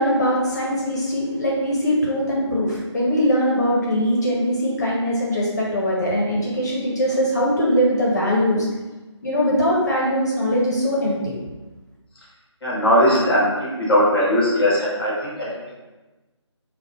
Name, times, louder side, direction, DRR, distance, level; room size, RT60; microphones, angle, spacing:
voice 1, 0.0-8.6 9.2-11.3, equal, 35° left, -4 dB, 0.6 m, -21 dB
voice 2, 12.6-15.5, equal, ahead, -7 dB, 0.8 m, -19 dB
4.0 x 2.1 x 3.9 m, 1.2 s
figure-of-eight pair, 165°, 16 cm